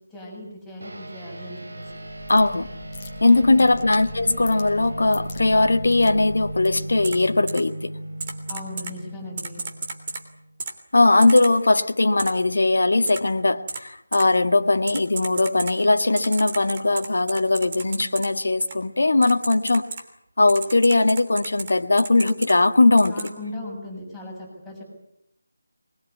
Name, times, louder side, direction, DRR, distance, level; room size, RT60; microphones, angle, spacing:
voice 1, 0.1-1.9 3.3-3.7 8.5-9.6 23.1-24.8, left 2 dB, ahead, -7 dB, 7.6 m, -38 dB
sound 1, 0.8-10.5, right 1 dB, 60° right, 4.2 m, -36 dB
sound 2, 1.8-7.2, left 4 dB, 20° left, 2.1 m, -44 dB
voice 2, 2.3-2.7 3.2-7.9 10.9-19.9 20.4-23.1, left 2 dB, 60° left, 7 dB, 1.6 m, -19 dB
Typing, 7.0-7.2 7.5-7.6 8.2-8.9 9.4-10.2 10.6-10.7 11.2-11.5 12.2-12.3 13.1-13.2 13.7-13.8 14.1-14.2 14.9-15.7 16.2-18.3 18.6-18.7 19.2-20.0 20.5-21.7 22.0-22.5 23.0-23.3, right 4 dB, 30° right, 3.1 m, -32 dB
23.0 x 21.5 x 8.3 m, 0.78 s
figure-of-eight pair, 160°, 0 cm